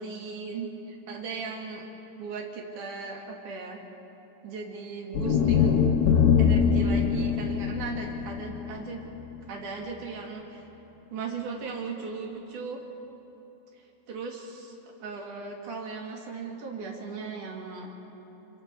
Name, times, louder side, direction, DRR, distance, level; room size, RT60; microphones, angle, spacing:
voice 1, 0.0-1.8 2.2-3.8 4.4-5.8 6.4-9.0 9.5-10.6 11.1-12.8 14.1-14.7 15.0-17.9, right 4 dB, 50° right, -1 dB, 3.1 m, -37 dB
sound 1, 5.1-9.4, left 7 dB, 65° left, 3.1 m, -23 dB
28.0 x 26.5 x 4.7 m, 3.0 s
omnidirectional pair, 5.6 m